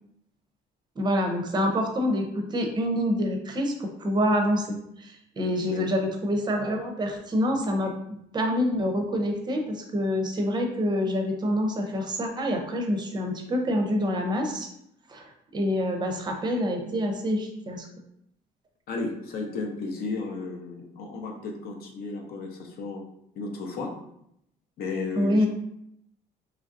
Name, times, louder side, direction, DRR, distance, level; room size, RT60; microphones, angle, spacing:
voice 1, 1.0-4.7 5.0-14.7 15.1-17.9 25.2-25.5, equal, 25° right, 3 dB, 0.5 m, -26 dB
voice 2, 5.5-5.9 18.9-23.0 23.4-23.9 24.8-25.5, left 3 dB, 65° left, 2 dB, 0.6 m, -34 dB
3.0 x 2.5 x 2.5 m, 0.76 s
cardioid pair, 110°, 17 cm